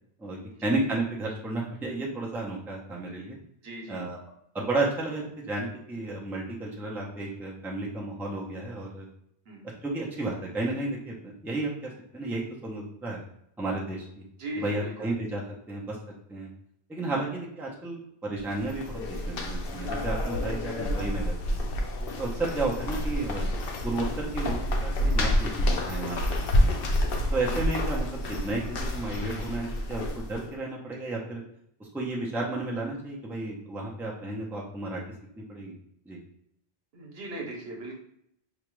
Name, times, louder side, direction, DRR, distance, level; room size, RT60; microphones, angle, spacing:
voice 1, 0.2-3.4 3.9-4.2 4.5-9.1 9.8-13.2 13.6-14.2 14.6-15.4 15.7-16.0 16.3-16.5 16.9-21.6 22.2-23.5 23.8-26.8 27.3-31.4 31.8-35.0 35.4-35.7 36.1-36.2, right 2 dB, ahead, -3 dB, 0.6 m, -32 dB
voice 2, 3.6-4.1 9.5-9.6 14.4-15.1 17.1-17.2 22.2-22.4 27.3-27.6 36.9-37.9, right 1 dB, 70° right, 0 dB, 1.0 m, -39 dB
sound 1, 18.4-30.5, left 1 dB, 65° left, 0.7 m, -28 dB
4.9 x 2.4 x 3.0 m, 0.73 s
omnidirectional pair, 1.1 m